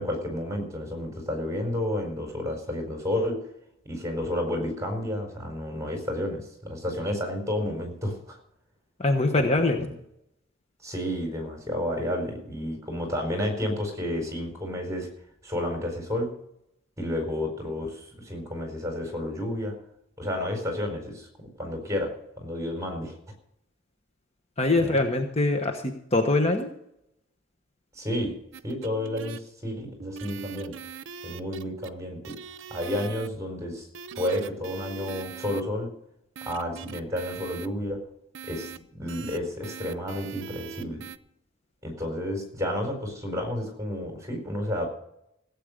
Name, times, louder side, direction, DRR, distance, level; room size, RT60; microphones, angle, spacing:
voice 1, 0.0-3.4 3.8-8.4 9.4-9.5 10.8-15.1 15.4-16.3 17.0-19.7 20.2-23.2 24.8-25.0 27.9-28.4 28.6-30.7 31.2-32.4 32.7-33.8 34.1-35.9 36.4-38.0 38.5-41.0 41.8-44.9, left 1 dB, 15° right, 4 dB, 4.5 m, -31 dB
voice 2, 9.0-9.9 24.6-26.7, left 2 dB, 30° left, 5 dB, 1.2 m, -23 dB
sound 1, 28.5-29.4 30.0-31.9 32.2-33.3 33.9-35.6 36.4-37.7 38.3-38.8 39.1-39.4 39.6-41.2, right 6 dB, 65° right, 0.7 m, -41 dB
16.5 x 8.5 x 6.6 m, 0.77 s
head